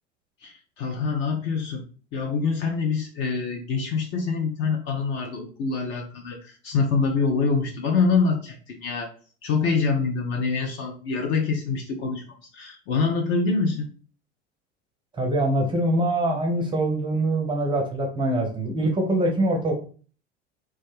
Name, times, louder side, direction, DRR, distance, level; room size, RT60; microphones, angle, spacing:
voice 1, 0.4-1.8 2.1-9.1 9.4-12.2 12.5-13.9, left 4 dB, 35° left, 2 dB, 0.4 m, -25 dB
voice 2, 15.2-19.7, right 1 dB, 15° right, 1 dB, 0.5 m, -24 dB
2.2 x 2.1 x 3.1 m, 0.40 s
figure-of-eight pair, 70°, 35 cm